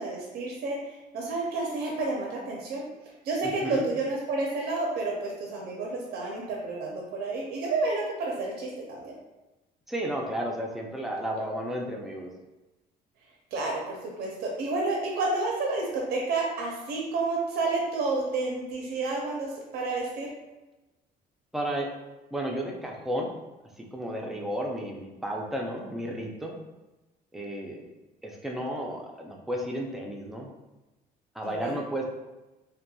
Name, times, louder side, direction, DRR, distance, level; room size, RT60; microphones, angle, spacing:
voice 1, 0.0-2.8 3.2-9.2 13.5-20.3 31.4-31.8, right 3 dB, 70° right, -1 dB, 0.5 m, -30 dB
voice 2, 3.4-3.8 9.9-12.3 21.5-21.9 22.3-23.3 23.9-26.6 27.3-27.8 28.2-30.5 31.4-32.1, right 1 dB, ahead, -1 dB, 0.4 m, -33 dB
2.8 x 2.2 x 2.2 m, 1.1 s
cardioid pair, 110°, 17 cm